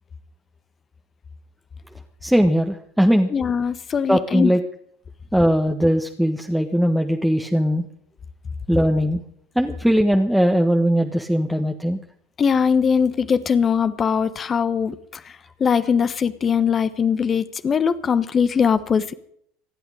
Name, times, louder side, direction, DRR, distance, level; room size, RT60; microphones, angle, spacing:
voice 1, 2.2-3.3 4.1-4.6 5.3-7.8 8.7-9.2 9.5-12.0, equal, ahead, 3 dB, 1.5 m, -19 dB
voice 2, 3.3-4.5 12.4-15.3 15.6-19.1, left 6 dB, 30° left, 13 dB, 1.2 m, -21 dB
25.0 x 11.5 x 5.0 m, 0.66 s
figure-of-eight pair, 70°, 0 cm